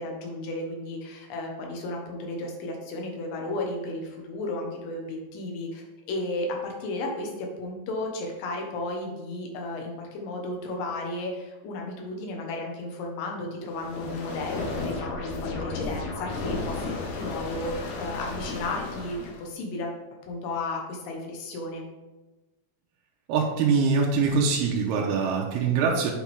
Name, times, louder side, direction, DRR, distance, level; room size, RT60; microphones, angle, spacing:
voice 1, 0.0-20.0 20.2-21.8, left 2 dB, 65° left, 1 dB, 2.8 m, -34 dB
sound 1, 13.7-19.5, left 3 dB, 85° left, 3.1 m, -33 dB
voice 2, 23.3-26.1, right 5 dB, 85° right, -1 dB, 2.8 m, -23 dB
8.2 x 5.9 x 3.5 m, 1.1 s
omnidirectional pair, 4.6 m